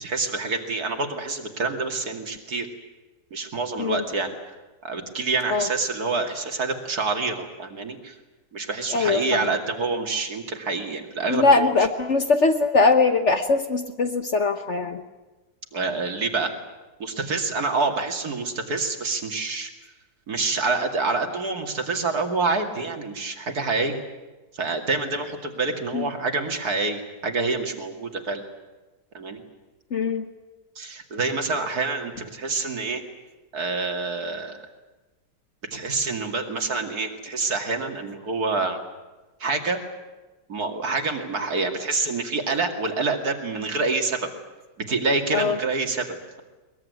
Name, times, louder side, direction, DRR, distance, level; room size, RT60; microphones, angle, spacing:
voice 1, 0.0-2.7 3.3-4.5 4.8-8.1 8.5-11.7 15.7-16.5 17.0-19.7 20.3-24.0 24.5-28.4 29.1-29.4 30.8-33.0 33.5-34.6 35.7-38.8 39.4-39.8 40.5-44.2 44.9-46.4, right 3 dB, 60° right, 5 dB, 2.8 m, -27 dB
voice 2, 8.9-9.5 11.3-15.0 25.9-26.1 29.9-30.3 45.3-45.5, left 3 dB, 45° left, 8 dB, 1.2 m, -21 dB
22.0 x 21.5 x 9.4 m, 1.2 s
omnidirectional pair, 1.9 m